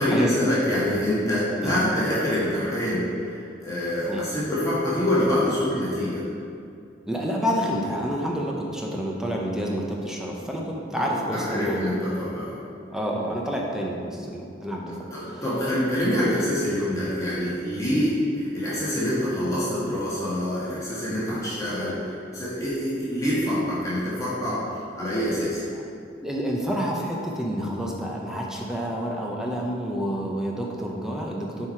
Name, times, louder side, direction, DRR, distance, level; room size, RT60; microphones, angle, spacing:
voice 1, 0.0-6.2 10.9-11.1 11.3-12.6 15.1-24.6 25.0-25.6, equal, 15° left, -9 dB, 1.6 m, -25 dB
voice 2, 7.1-11.9 12.9-15.4 25.7-25.8 26.2-31.7, equal, 5° right, -2 dB, 0.7 m, -29 dB
7.2 x 4.8 x 4.4 m, 2.5 s
head